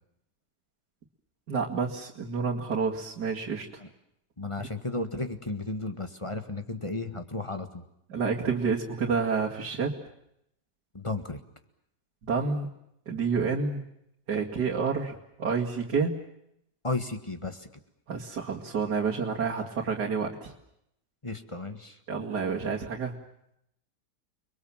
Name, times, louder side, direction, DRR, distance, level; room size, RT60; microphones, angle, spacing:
voice 1, 1.5-3.7 8.1-9.9 12.2-12.7 13.1-13.9 14.3-16.1 18.1-20.5 22.1-23.1, right 5 dB, 70° right, -3 dB, 2.9 m, -29 dB
voice 2, 4.4-7.8 10.9-11.4 16.8-17.7 21.2-21.9, left 2 dB, 20° left, 8 dB, 1.7 m, -34 dB
30.0 x 22.0 x 7.4 m, 0.78 s
omnidirectional pair, 1.8 m